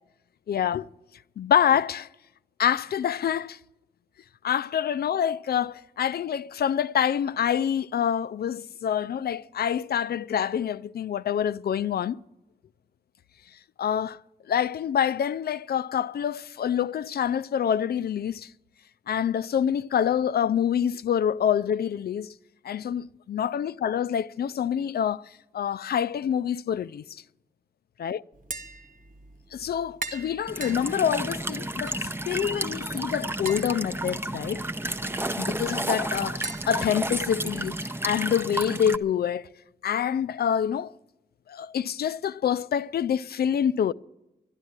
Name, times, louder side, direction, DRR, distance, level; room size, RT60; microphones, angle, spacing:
voice 1, 0.5-0.9 1.4-2.1 2.6-3.6 4.4-12.2 13.8-14.2 14.5-18.5 19.1-22.3 22.6-27.2 28.0-28.2 29.5-34.7 35.4-39.5 39.8-40.9 41.5-43.9, left 9 dB, 75° left, 0.4 m, -26 dB
Tap, 28.3-37.8, right 3 dB, 55° right, 1.2 m, -43 dB
Walk footsteps / Chirp tweet / Stream, 30.5-39.0, right 1 dB, 15° right, 0.7 m, -31 dB
12.0 x 11.5 x 8.8 m
cardioid pair, 60°, 16 cm